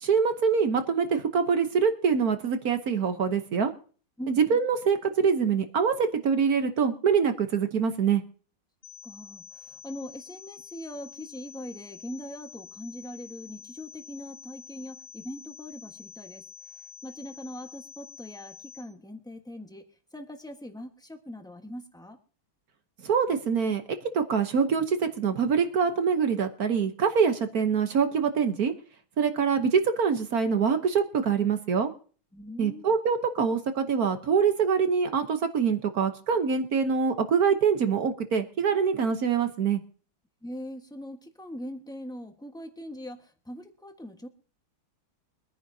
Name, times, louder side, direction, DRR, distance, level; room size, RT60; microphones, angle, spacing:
voice 1, 0.0-3.7 4.3-8.2 23.0-23.8 24.1-28.7 29.2-31.9 32.6-39.8, right 6 dB, 55° right, 8 dB, 1.3 m, -24 dB
sound 1, 8.8-18.8, left 9 dB, 80° left, 2.7 m, -48 dB
voice 2, 9.0-16.4 16.7-19.8 20.1-22.2 32.3-32.9 40.4-44.3, equal, 5° left, 5 dB, 0.9 m, -41 dB
24.0 x 9.9 x 2.7 m, 0.40 s
omnidirectional pair, 2.2 m